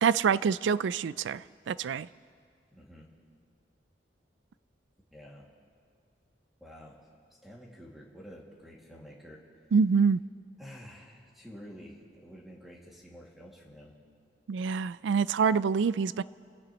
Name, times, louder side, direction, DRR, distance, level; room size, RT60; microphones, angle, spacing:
voice 1, 0.0-2.1 9.7-10.2 14.5-16.2, right 6 dB, 75° right, 18 dB, 0.3 m, -26 dB
voice 2, 2.7-3.1 5.1-5.5 6.6-7.0 7.4-9.4 10.6-13.9, equal, ahead, -4 dB, 2.2 m, -49 dB
29.0 x 16.5 x 3.0 m, 2.2 s
head